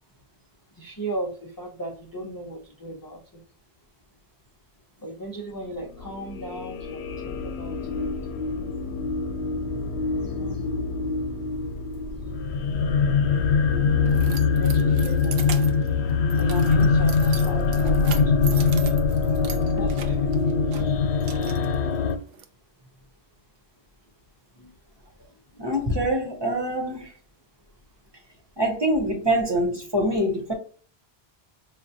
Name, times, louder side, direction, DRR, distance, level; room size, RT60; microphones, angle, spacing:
voice 1, 0.7-3.4 5.0-8.1 10.2-10.7 14.4-15.9 16.3-19.0 19.6-20.3 24.6-24.7 25.6-25.7, right 1 dB, 30° left, 0.5 m, -37 dB
sound 1, 5.9-22.2, left 5 dB, 90° left, 0.9 m, -23 dB
Keys jangling, 13.4-22.4, right 7 dB, 70° right, 0.8 m, -40 dB
voice 2, 25.6-27.1 28.6-30.5, equal, 25° right, 0.8 m, -24 dB
5.5 x 2.3 x 2.7 m
omnidirectional pair, 1.1 m